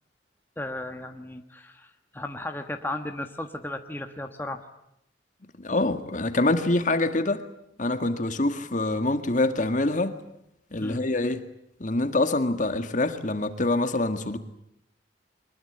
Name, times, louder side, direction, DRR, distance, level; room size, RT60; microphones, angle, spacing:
voice 1, 0.6-4.6 10.8-11.1, left 1 dB, 10° left, 1.4 m, -35 dB
voice 2, 5.6-7.4 7.8-10.1 10.7-11.4 11.8-14.4, left 2 dB, 45° left, 1.9 m, -25 dB
23.5 x 21.5 x 9.9 m
head